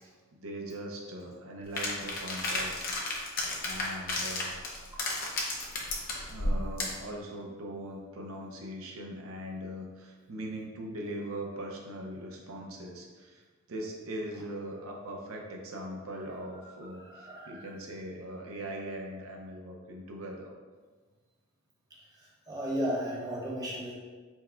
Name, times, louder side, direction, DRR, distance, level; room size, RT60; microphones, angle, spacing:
voice 1, 0.3-4.9 6.3-20.5, right 1 dB, 85° right, 0 dB, 0.6 m, -41 dB
sound 1, 1.8-7.0, left 2 dB, 45° left, 0.7 m, -33 dB
voice 2, 17.1-17.7 22.2-23.9, equal, 20° right, -5 dB, 0.9 m, -35 dB
4.5 x 2.2 x 4.3 m, 1.4 s
head